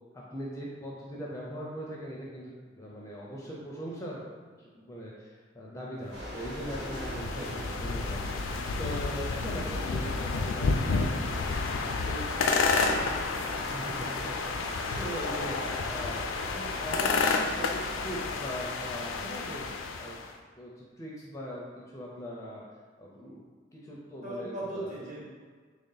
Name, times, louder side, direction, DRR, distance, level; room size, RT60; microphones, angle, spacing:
voice 1, 0.1-11.6 12.0-12.3 13.5-15.6 15.9-16.2 16.5-19.7 20.0-20.2 20.6-22.6 23.0-23.4 23.7-24.9, equal, 15° left, -4 dB, 0.5 m, -40 dB
sound 1, 6.1-18.3, equal, 65° right, 1.5 m, -42 dB
sound 2, 6.2-20.3, left 4 dB, 85° left, 0.4 m, -31 dB
voice 2, 12.2-13.2 24.2-25.2, right 1 dB, 40° right, -7 dB, 1.2 m, -39 dB
3.5 x 2.7 x 3.8 m, 1.5 s
head